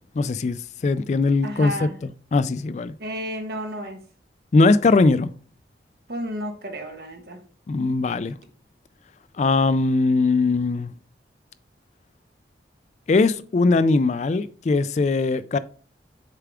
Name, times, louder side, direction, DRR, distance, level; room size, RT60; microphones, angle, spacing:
voice 1, 0.2-1.9 2.3-2.9 4.5-5.3 7.7-8.3 9.4-10.9 13.1-15.6, left 3 dB, 40° left, 0.3 m, -20 dB
voice 2, 1.4-1.9 3.0-4.0 6.1-7.4, equal, 60° right, 1.3 m, -32 dB
6.7 x 4.7 x 3.5 m
head